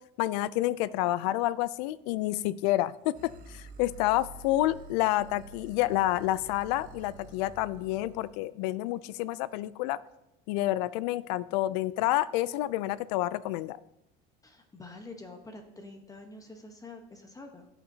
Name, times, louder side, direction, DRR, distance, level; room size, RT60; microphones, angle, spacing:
voice 1, 0.2-3.1 3.5-10.0 10.5-13.8, left 15 dB, 90° left, 19 dB, 0.4 m, -29 dB
sound 1, 3.1-8.4, right 3 dB, 45° right, 1.3 m, -49 dB
voice 2, 14.4-17.7, left 2 dB, 15° left, 5 dB, 1.0 m, -47 dB
15.0 x 5.8 x 2.8 m, 0.88 s
supercardioid pair, 115°, 20 cm